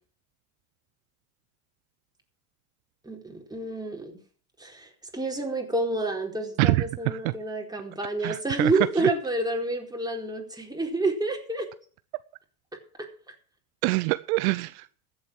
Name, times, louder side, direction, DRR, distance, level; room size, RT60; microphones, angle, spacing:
voice 1, 3.0-4.2 4.6-11.7 12.7-13.1, right 2 dB, 10° right, 1 dB, 4.5 m, -29 dB
voice 2, 6.6-7.2 8.2-8.7 13.8-14.9, right 22 dB, 65° right, 15 dB, 0.7 m, -25 dB
14.0 x 8.0 x 7.5 m, 0.44 s
hypercardioid pair, 80°, 45 cm